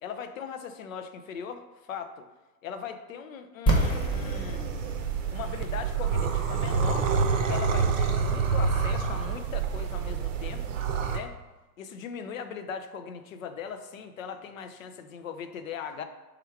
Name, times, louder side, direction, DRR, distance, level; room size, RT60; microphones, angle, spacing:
voice 1, 0.0-2.3 2.6-4.7 5.3-10.8 11.0-11.4 11.8-16.0, left 7 dB, 60° left, 8 dB, 0.6 m, -39 dB
sound 1, 3.7-9.4, right 1 dB, 10° left, 0.5 m, -32 dB
sound 2, 3.7-11.2, right 5 dB, 55° right, 0.6 m, -28 dB
3.5 x 3.4 x 4.5 m, 1.1 s
figure-of-eight pair, 95°, 47 cm